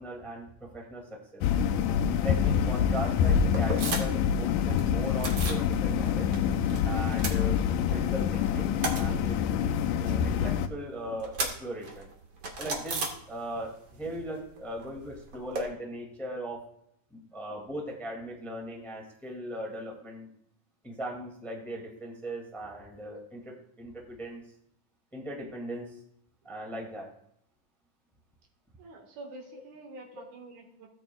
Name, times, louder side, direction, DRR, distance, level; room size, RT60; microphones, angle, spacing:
voice 1, 0.0-1.4 2.2-6.3 6.8-7.6 7.9-9.7 10.0-12.1 12.6-16.7 17.1-20.3 20.8-24.4 25.1-25.9 26.4-27.1, equal, ahead, -1 dB, 1.5 m, -39 dB
sound 1, 1.4-10.7, left 8 dB, 85° left, 2.2 m, -26 dB
sound 2, 3.5-4.3 4.6-5.7 6.0-6.8 7.0-8.1 8.4-13.8 14.0-15.6, right 3 dB, 45° right, 1.8 m, -36 dB
voice 2, 28.8-30.9, right 2 dB, 70° right, 2 dB, 3.0 m, -47 dB
16.0 x 8.8 x 2.3 m, 0.69 s
omnidirectional pair, 3.7 m